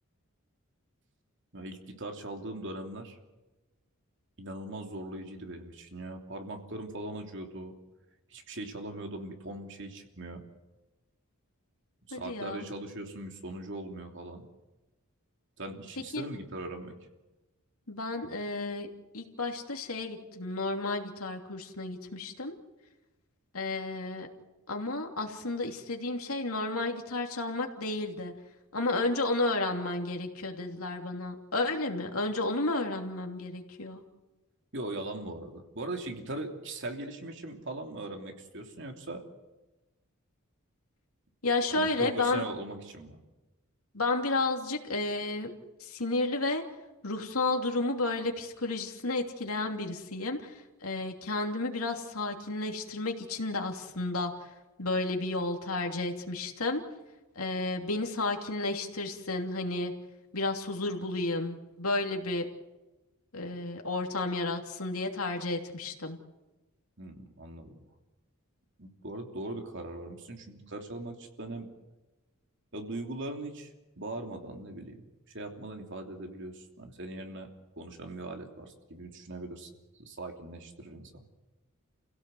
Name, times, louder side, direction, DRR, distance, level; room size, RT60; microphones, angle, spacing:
voice 1, 1.5-3.2 4.4-7.7 8.3-10.4 12.1-14.5 15.6-16.9 34.7-39.2 41.7-43.2 67.0-67.8 68.8-71.7 72.7-73.7 74.0-77.5 77.8-79.7 80.0-81.3, right 2 dB, 55° right, 3 dB, 3.0 m, -40 dB
voice 2, 12.1-12.6 16.1-16.3 17.9-18.9 19.1-22.5 23.5-24.3 24.7-28.3 28.7-34.0 41.4-42.4 43.9-45.5 45.8-46.6 47.0-54.3 54.8-56.8 57.3-59.9 60.3-62.5 63.3-66.2, left 2 dB, 80° left, 3 dB, 3.0 m, -32 dB
28.5 x 16.5 x 7.9 m, 1.1 s
head